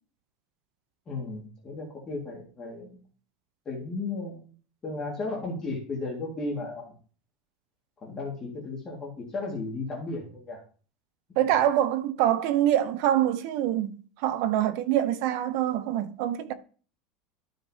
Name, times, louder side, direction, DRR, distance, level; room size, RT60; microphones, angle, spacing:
voice 1, 1.1-3.1 3.7-4.5 4.8-7.0 8.0-10.6, left 3 dB, 20° left, 1.9 m, -35 dB
voice 2, 11.4-16.5, right 12 dB, 50° right, 0.6 m, -25 dB
12.5 x 5.1 x 2.8 m
supercardioid pair, 175°, 3 cm